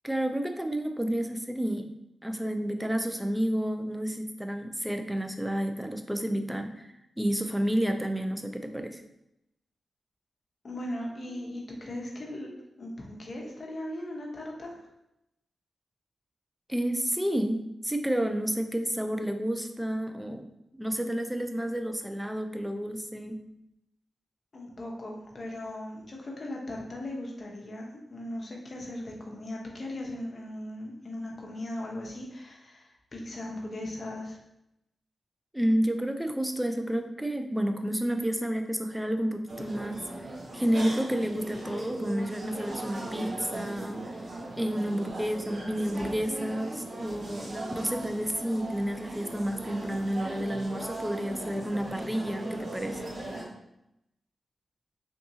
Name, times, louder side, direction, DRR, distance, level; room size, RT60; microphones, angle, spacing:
voice 1, 0.0-1.9 2.2-9.0 16.7-23.4 35.5-40.1 40.5-44.1 44.6-53.0, equal, 5° right, 6 dB, 0.4 m, -30 dB
voice 2, 10.6-14.8 24.5-34.4, left 1 dB, 50° left, -1 dB, 0.8 m, -38 dB
sound 1, 39.5-53.4, right 2 dB, 60° right, 1.1 m, -39 dB
3.5 x 2.7 x 2.7 m, 0.85 s
cardioid pair, 80°, 0 cm